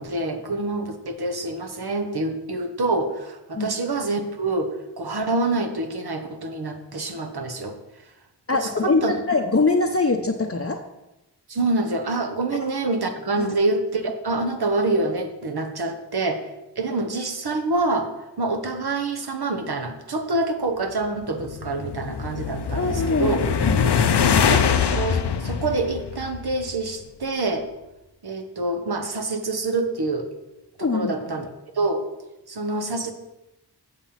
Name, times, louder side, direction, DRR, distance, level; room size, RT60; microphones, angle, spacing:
voice 1, 0.0-7.8 8.5-9.2 11.5-16.4 16.8-18.1 18.4-23.5 24.5-24.7 24.9-27.7 28.2-30.3 30.8-31.4 31.8-32.1 32.5-33.1, right 2 dB, 65° right, 6 dB, 1.2 m, -26 dB
voice 2, 8.5-10.8 13.4-13.5 22.8-23.9 30.8-31.1 31.4-31.5, left 3 dB, 35° left, 3 dB, 0.8 m, -23 dB
sound 1, 21.2-26.7, left 6 dB, 75° left, 0.7 m, -23 dB
8.2 x 6.9 x 5.7 m, 0.96 s
wide cardioid pair, 55°, 41 cm